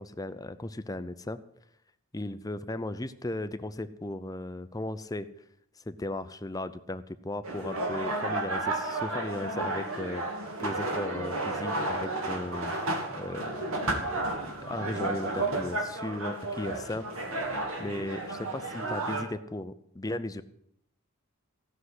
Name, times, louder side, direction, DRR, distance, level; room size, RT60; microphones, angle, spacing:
voice 1, 0.0-1.4 2.1-5.3 5.8-13.6 14.6-17.1 17.8-20.4, left 1 dB, 15° left, 12 dB, 0.6 m, -36 dB
sound 1, 7.4-19.2, right 2 dB, 70° right, 2.6 m, -32 dB
16.5 x 6.4 x 9.7 m, 0.72 s
head